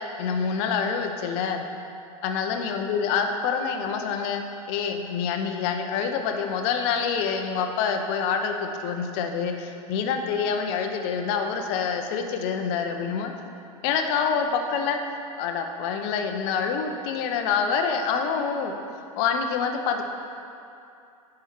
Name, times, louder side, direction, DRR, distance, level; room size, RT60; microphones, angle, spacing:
voice 1, 0.2-1.7 2.2-4.4 4.7-13.3 13.8-15.0 15.4-20.0, left 6 dB, 50° left, 4 dB, 0.8 m, -26 dB
10.0 x 4.9 x 4.5 m, 2.6 s
figure-of-eight pair, 85°, 18 cm